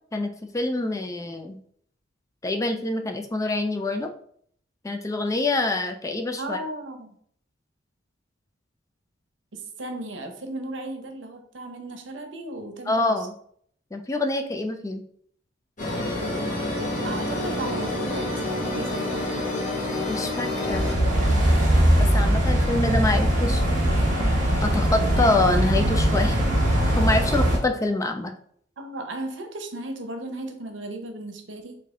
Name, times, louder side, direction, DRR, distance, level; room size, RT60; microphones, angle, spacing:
voice 1, 0.1-1.6 2.4-4.1 4.8-6.6 12.9-13.3 13.9-15.0 20.1-20.9 22.0-23.6 24.6-26.4 26.9-28.3, left 2 dB, 15° left, 5 dB, 0.4 m, -26 dB
voice 2, 6.4-7.2 9.5-13.3 17.0-19.3 28.8-31.8, right 2 dB, 80° right, 6 dB, 0.7 m, -36 dB
sound 1, 15.8-20.9, left 1 dB, 45° left, 1.4 m, -28 dB
sound 2, 20.6-27.6, equal, 45° right, 1.4 m, -21 dB
3.9 x 2.7 x 3.7 m, 0.62 s
head